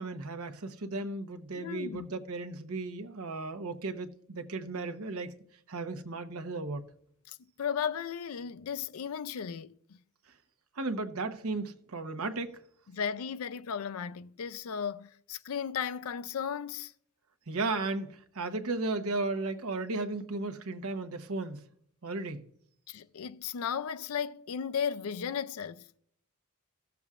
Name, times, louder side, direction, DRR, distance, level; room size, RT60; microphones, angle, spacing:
voice 1, 0.0-5.3 5.7-6.8 10.8-12.6 17.5-21.6 22.0-22.4, right 3 dB, 85° right, 0.9 m, -35 dB
voice 2, 1.6-2.1 7.3-10.0 12.9-16.9 22.9-25.9, left 7 dB, 80° left, 0.4 m, -35 dB
15.5 x 7.0 x 2.4 m
head